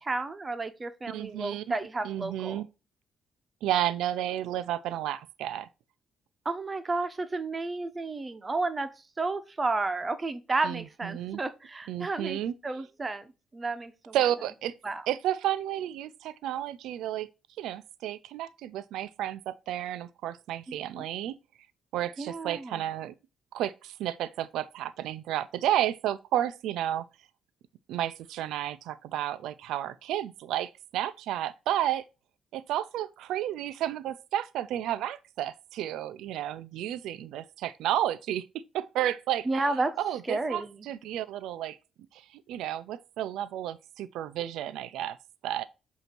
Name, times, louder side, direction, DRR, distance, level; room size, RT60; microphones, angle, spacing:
voice 1, 0.0-2.6 6.4-8.9 9.2-14.2 14.8-15.0 20.7-21.0 22.2-22.8 39.4-40.0 40.3-40.8, right 3 dB, 25° right, 1.0 m, -32 dB
voice 2, 1.1-1.7 2.0-2.7 3.6-5.7 10.6-11.4 11.9-12.5 14.1-14.7 15.1-17.3 17.6-21.3 21.9-23.1 23.5-27.0 27.9-32.0 32.5-39.6 40.0-41.8 42.1-45.2 45.4-45.6, right 12 dB, 85° right, 0.5 m, -32 dB
8.0 x 2.8 x 4.5 m
cardioid pair, 90°, 0 cm